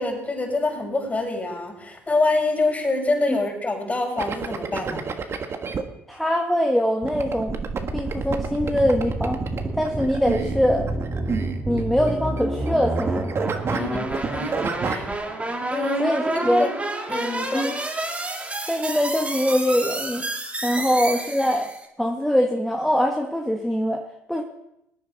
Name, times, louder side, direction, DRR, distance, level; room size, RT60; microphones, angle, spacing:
voice 1, 0.0-5.0 13.7-14.5 14.8-15.1 15.7-16.7 17.1-17.7, left 2 dB, 25° left, 1 dB, 6.2 m, -26 dB
sound 1, 4.2-5.8 7.0-12.7 13.0-15.1, right 5 dB, 40° right, 1.4 m, -29 dB
voice 2, 6.1-7.6 7.9-9.4 9.7-10.9 11.7-13.3 16.0-16.7 17.5-17.7 18.7-20.3 20.6-21.7 22.0-24.4, equal, 5° left, 1 dB, 1.4 m, -23 dB
sound 2, 7.5-21.9, right 2 dB, 20° right, 2.4 m, -29 dB
19.5 x 9.3 x 4.0 m, 0.81 s
supercardioid pair, 70°, 7 cm